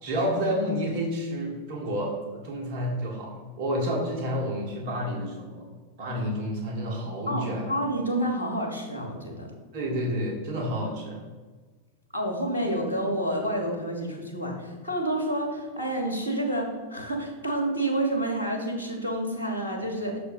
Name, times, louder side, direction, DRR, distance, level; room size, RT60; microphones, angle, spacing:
voice 1, 0.0-5.6 6.0-7.7 9.7-11.2, equal, 50° right, 0 dB, 1.6 m, -30 dB
voice 2, 7.3-9.5 12.1-20.2, right 1 dB, 85° right, 2 dB, 1.4 m, -29 dB
6.5 x 4.2 x 5.4 m, 1.3 s
figure-of-eight pair, 90°, 0 cm